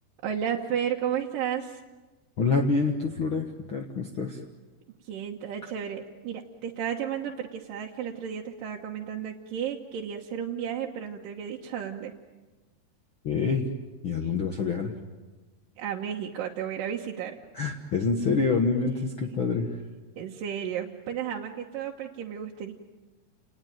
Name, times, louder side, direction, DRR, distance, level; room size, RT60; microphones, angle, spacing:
voice 1, 0.2-1.8 5.0-12.1 14.2-14.3 15.8-17.4 19.2-19.4 20.2-22.7, right 8 dB, 70° right, -1 dB, 2.7 m, -33 dB
voice 2, 2.4-4.4 13.2-13.7 14.0-14.9 17.5-19.7, left 4 dB, 55° left, 3 dB, 1.4 m, -26 dB
29.5 x 19.5 x 9.2 m, 1.2 s
omnidirectional pair, 4.5 m